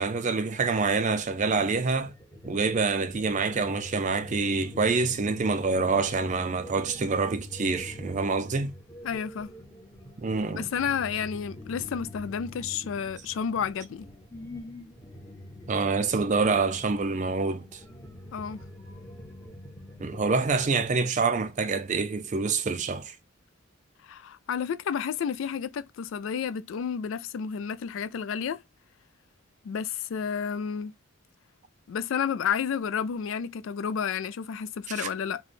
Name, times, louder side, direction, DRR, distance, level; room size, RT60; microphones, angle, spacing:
voice 1, 0.0-2.1 2.4-8.7 10.2-10.7 15.7-17.8 20.0-23.1 35.0-35.1, right 4 dB, 35° right, 0.4 m, -26 dB
sound 1, 1.4-20.9, left 1 dB, 10° left, 0.9 m, -45 dB
voice 2, 9.0-9.5 10.5-14.1 18.3-18.6 24.0-28.6 29.6-30.9 31.9-35.4, left 7 dB, 65° left, 0.3 m, -31 dB
3.3 x 2.2 x 4.0 m
head